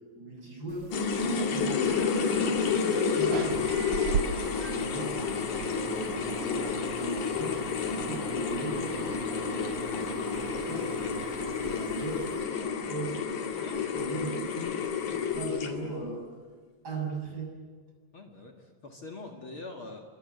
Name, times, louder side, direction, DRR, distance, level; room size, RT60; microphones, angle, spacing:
voice 1, 0.2-0.9 1.3-7.6 8.0-9.9 10.2-11.3 11.6-14.7 15.1-16.3 16.8-17.5, right 2 dB, 30° right, 1 dB, 7.3 m, -39 dB
sound 1, 0.7-12.4, right 7 dB, 85° right, 2.9 m, -39 dB
sound 2, 0.9-16.0, left 6 dB, 85° left, 3.7 m, -30 dB
voice 2, 13.6-14.1 18.1-18.5 18.8-20.0, left 3 dB, 45° left, 2 dB, 2.7 m, -43 dB
29.5 x 24.0 x 8.2 m, 1.5 s
omnidirectional pair, 3.3 m